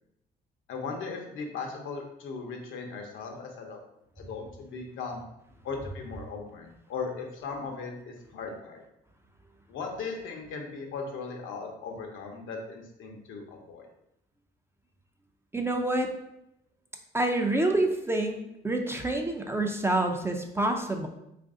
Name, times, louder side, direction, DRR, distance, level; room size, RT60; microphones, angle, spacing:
voice 1, 0.7-3.8 4.2-5.2 5.6-8.8 9.7-13.9, left 4 dB, 80° left, 2 dB, 0.7 m, -38 dB
voice 2, 15.5-16.1 17.1-18.4 18.6-21.1, right 2 dB, 10° right, 3 dB, 0.4 m, -27 dB
3.1 x 2.5 x 3.6 m, 0.83 s
cardioid pair, 90°, 20 cm